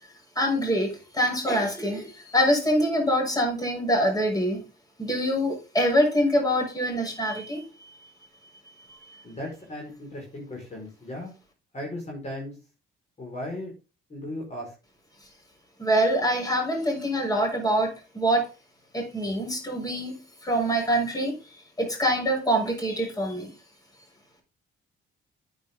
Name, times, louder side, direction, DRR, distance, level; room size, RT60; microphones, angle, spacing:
voice 1, 0.4-0.9 1.2-2.0 2.3-4.6 5.0-7.6 15.8-18.4 18.9-20.2 20.4-21.3 21.8-23.5, equal, 20° left, 6.3 m, -24 dB
voice 2, 9.2-11.3 11.7-12.6 13.2-13.7 14.1-14.7, left 1 dB, 35° left, 5.2 m, -36 dB
9.6 x 9.6 x 3.8 m
cardioid pair, 90°, 20 cm